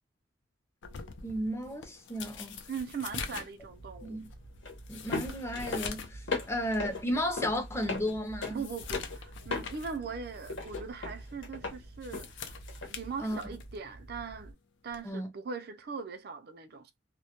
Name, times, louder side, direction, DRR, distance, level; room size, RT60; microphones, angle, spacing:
sound 1, 0.8-6.2 6.6-6.7 7.2-7.3 7.8-10.0 10.4-10.6 11.8-13.8 14.9-15.1, left 6 dB, 70° left, 0.4 m, -44 dB
voice 1, 1.2-2.6 4.0-4.3 4.9-6.2 6.5-8.6 13.2-13.4 15.0-15.3, equal, 15° left, 0.5 m, -33 dB
voice 2, 2.7-4.2 8.5-12.5 12.9-14.5 14.8-16.9, right 5 dB, 55° right, 0.5 m, -40 dB
sound 2, 3.6-14.5, left 3 dB, 85° left, 0.9 m, -40 dB
2.2 x 2.1 x 2.8 m
head